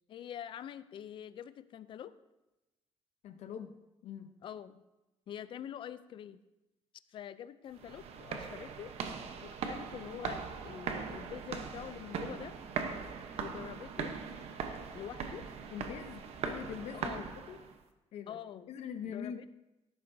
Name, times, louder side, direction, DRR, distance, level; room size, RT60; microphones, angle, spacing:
voice 1, 0.1-2.1 4.4-4.8 5.3-6.4 7.1-8.9 9.4-12.6 13.4-14.2 14.9-15.5 16.9-17.4 18.3-18.7 19.0-19.5, left 10 dB, 50° left, 15 dB, 0.4 m, -45 dB
voice 2, 3.2-3.7 4.0-4.3 15.7-17.6 18.1-19.4, left 8 dB, 80° left, 7 dB, 0.8 m, -43 dB
sound 1, 7.7-17.8, right 6 dB, 70° right, 0.9 m, -40 dB
13.0 x 11.0 x 2.7 m, 0.98 s
cardioid pair, 175°, 11 cm